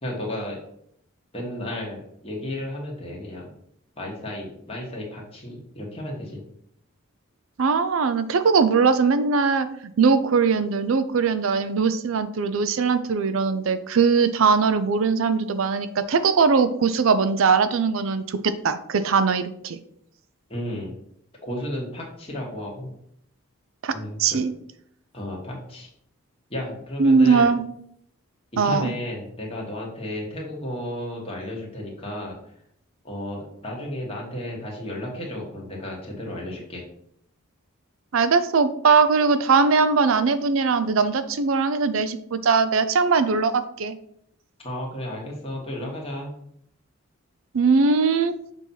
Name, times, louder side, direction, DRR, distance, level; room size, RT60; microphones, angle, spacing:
voice 1, 0.0-0.6 1.3-3.5 4.0-6.4 20.5-21.0 21.4-22.9 23.9-24.4 25.1-25.9 26.5-27.5 28.6-32.4 33.0-36.8 44.6-46.3, left 1 dB, 25° left, -2 dB, 1.7 m, -33 dB
voice 2, 7.6-9.7 10.0-19.8 23.8-23.9 24.2-24.5 27.0-27.6 28.6-28.9 38.1-44.0 47.5-48.3, right 5 dB, 70° right, 12 dB, 0.5 m, -20 dB
6.9 x 2.9 x 5.6 m, 0.70 s
head